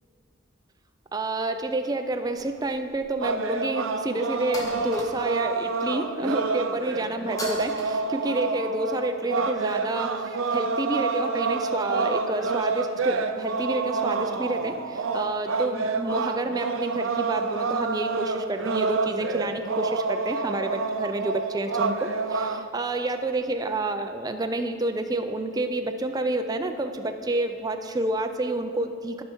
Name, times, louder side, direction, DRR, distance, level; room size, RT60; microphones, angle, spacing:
voice 1, 1.1-29.2, right 2 dB, 20° right, 6 dB, 0.4 m, -29 dB
sound 1, 2.3-3.2 3.5-3.6 4.5-5.5 7.4-7.9, left 1 dB, 20° left, 1.2 m, -37 dB
sound 2, 3.2-22.7, right 4 dB, 80° right, 0.5 m, -28 dB
13.0 x 5.6 x 4.5 m, 2.5 s
head